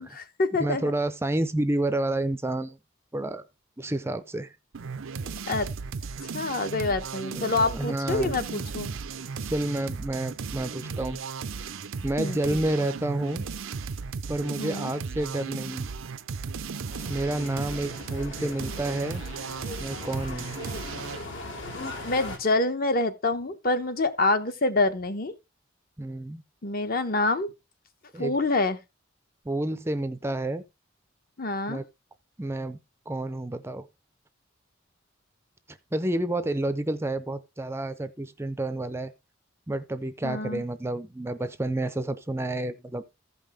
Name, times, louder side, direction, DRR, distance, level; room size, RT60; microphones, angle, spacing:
voice 1, 0.0-0.9 5.5-5.7 6.3-8.9 12.2-12.4 14.6-14.9 22.0-25.3 26.6-27.5 28.2-28.8 31.4-31.8 40.2-40.6, left 2 dB, 45° left, 1.0 m, -26 dB
voice 2, 0.6-2.8 3.1-3.4 3.8-4.6 7.3-8.4 9.5-11.2 12.0-13.5 14.3-15.9 17.1-19.2 19.8-20.5 26.0-26.4 28.1-28.3 29.5-30.6 31.7-31.8 32.4-32.8 33.1-33.9 35.7-39.1 39.7-43.0, right 1 dB, 15° right, 0.5 m, -29 dB
sound 1, 4.7-21.3, right 5 dB, 85° right, 0.6 m, -36 dB
sound 2, 16.9-22.4, left 2 dB, 70° left, 2.7 m, -39 dB
15.0 x 5.4 x 3.5 m
head